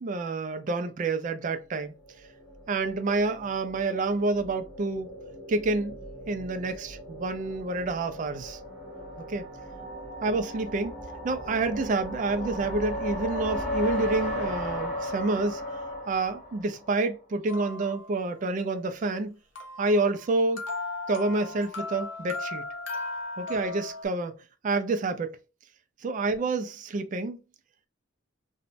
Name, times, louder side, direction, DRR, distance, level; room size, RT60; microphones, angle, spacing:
voice 1, 0.0-1.9 2.7-5.1 5.5-6.0 6.3-8.6 9.2-9.4 10.2-11.0 11.2-15.6 16.1-19.4 19.8-20.6 21.1-22.7 23.4-24.4 24.6-25.4 26.0-27.4, right 3 dB, 40° right, 0.4 m, -28 dB
sound 1, 1.9-17.1, equal, 35° left, 1.1 m, -36 dB
sound 2, 17.5-18.4 19.6-24.1, left 2 dB, 85° left, 0.7 m, -37 dB
3.0 x 2.1 x 2.5 m
head